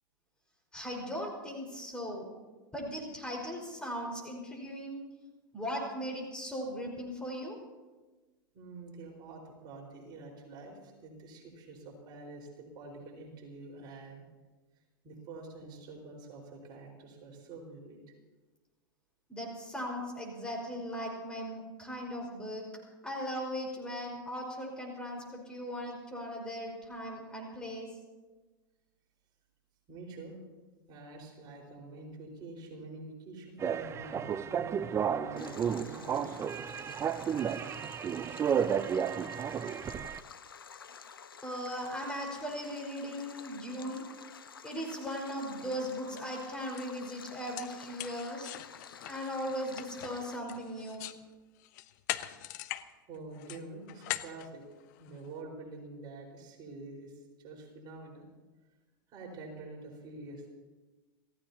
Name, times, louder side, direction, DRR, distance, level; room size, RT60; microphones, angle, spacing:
voice 1, 0.7-2.3 2.7-5.0 5.5-7.6 19.3-22.6 23.0-27.9 41.4-44.0 44.6-48.5 49.0-51.0, equal, 5° left, -1 dB, 5.1 m, -38 dB
voice 2, 8.5-14.2 15.0-18.0 29.9-30.3 30.9-36.3 53.1-54.6 55.0-58.3 59.1-60.5, right 3 dB, 40° right, -1 dB, 4.9 m, -47 dB
sound 1, 33.6-40.2, right 8 dB, 25° right, 0.5 m, -32 dB
Stream, 35.4-50.4, left 6 dB, 85° left, 1.1 m, -51 dB
sound 2, 45.7-45.8 46.2-46.4 46.8-46.9 47.3-51.2 51.6-52.9 53.1-55.3, left 16 dB, 55° left, 0.9 m, -41 dB
27.5 x 16.0 x 2.9 m, 1.3 s
hypercardioid pair, 95°, 12 cm